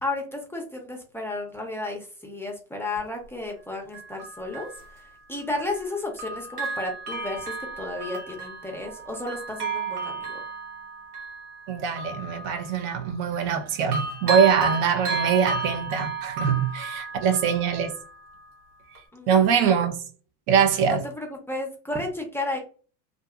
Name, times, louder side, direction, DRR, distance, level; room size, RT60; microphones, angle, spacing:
voice 1, 0.0-4.7 5.0-10.4 19.1-19.3 21.0-22.6, left 2 dB, 5° left, 0.6 m, -33 dB
Bell, 3.0-3.1 3.9-5.9 6.2-13.6 13.9-18.5 19.0-19.1, right 4 dB, 85° right, 1.2 m, -33 dB
voice 2, 11.7-17.9 19.3-20.0 20.5-21.0, right 7 dB, 55° right, 0.6 m, -23 dB
2.6 x 2.4 x 2.3 m
hypercardioid pair, 85°, 44 cm